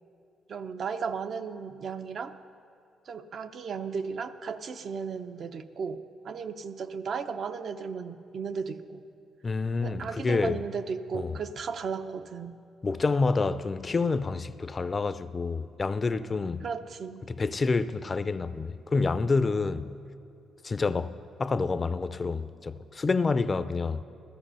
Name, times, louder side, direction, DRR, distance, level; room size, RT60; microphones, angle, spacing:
voice 1, 0.5-2.3 3.1-9.0 9.8-12.6 16.6-17.3, right 5 dB, 55° right, 0.7 m, -35 dB
voice 2, 9.4-10.6 11.1-11.4 12.8-16.7 17.3-20.0 20.6-24.0, left 4 dB, 30° left, 0.5 m, -28 dB
15.0 x 13.5 x 5.6 m
cardioid pair, 90°, 0 cm